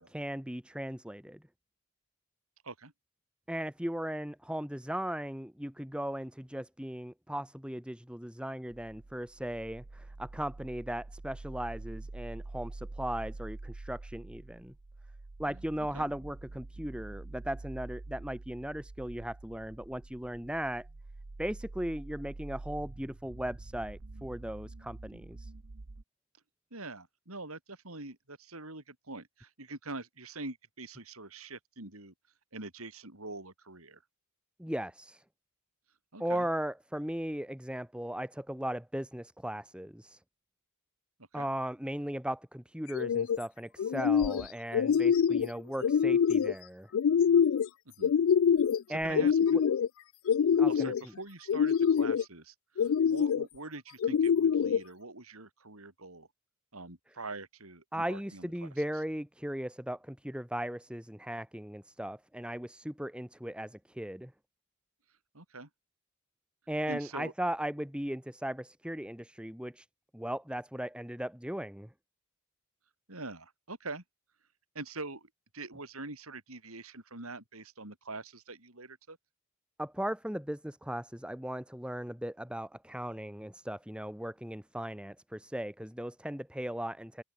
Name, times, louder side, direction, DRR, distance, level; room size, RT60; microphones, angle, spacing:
voice 1, 0.0-1.4 3.5-14.7 15.4-20.9 21.4-25.5 34.6-35.2 36.2-40.2 41.3-46.9 48.9-49.3 50.6-51.1 57.9-64.3 66.7-69.9 70.1-71.9 79.8-87.2, right 1 dB, 5° right, 1.8 m, -37 dB
Staffelzelt Erdbeben, 8.7-26.0, right 2 dB, 60° right, 1.0 m, -46 dB
voice 2, 26.7-32.1 32.5-34.0 36.1-36.5 41.3-41.5 47.9-48.1 48.9-49.6 50.7-56.3 56.7-58.7 65.3-65.7 66.9-67.3 73.1-74.0 74.7-79.2, right 2 dB, 80° right, 6.2 m, -44 dB
sound 1, 42.9-43.4 43.8-44.4 44.7-45.5 45.8-46.5 46.9-47.7 48.0-48.8 49.1-49.9 50.3-51.0 51.5-52.2 52.8-53.4 54.0-54.8, left 7 dB, 70° left, 0.3 m, -25 dB
open air
head